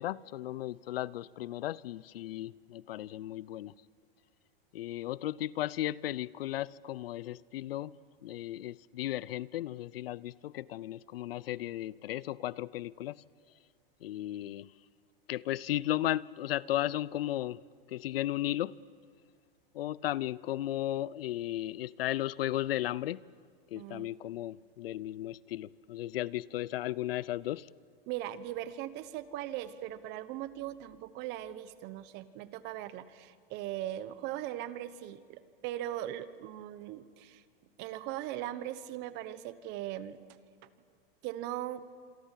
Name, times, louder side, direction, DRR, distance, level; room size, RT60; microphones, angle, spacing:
voice 1, 0.0-3.7 4.7-7.9 8.2-13.2 14.0-14.7 15.3-17.6 17.9-18.7 19.7-23.2 23.7-27.7, left 14 dB, 80° left, 0.7 m, -35 dB
voice 2, 23.7-24.2 28.1-37.4 37.8-40.2 40.6-40.7 41.2-41.8, right 13 dB, 35° right, 1.2 m, -39 dB
27.0 x 23.5 x 7.5 m
supercardioid pair, 145°, 29 cm